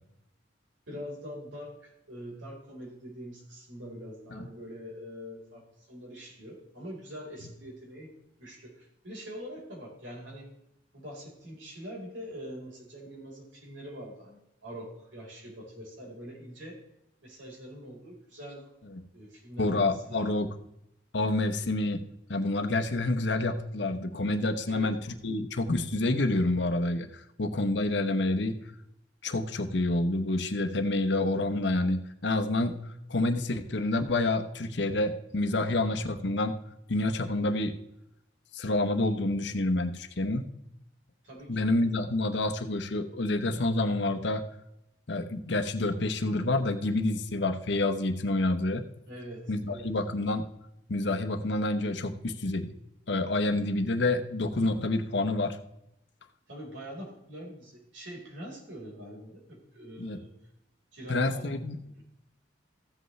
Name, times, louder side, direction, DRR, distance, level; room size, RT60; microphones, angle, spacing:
voice 1, 0.9-8.1 8.4-10.5 10.9-16.8 17.2-18.7 19.1-20.5 24.7-24.9 41.2-41.7 49.1-49.9 56.5-60.3 60.9-61.9, equal, 80° right, -2 dB, 4.4 m, -44 dB
voice 2, 19.6-20.5 21.1-22.0 22.3-28.6 29.2-36.5 36.9-37.7 38.5-40.5 41.5-44.4 45.1-48.8 49.5-50.4 50.9-52.7 53.1-55.6 60.0-60.2 61.1-61.8, left 2 dB, 65° left, 8 dB, 0.9 m, -28 dB
14.5 x 7.9 x 3.2 m, 0.83 s
head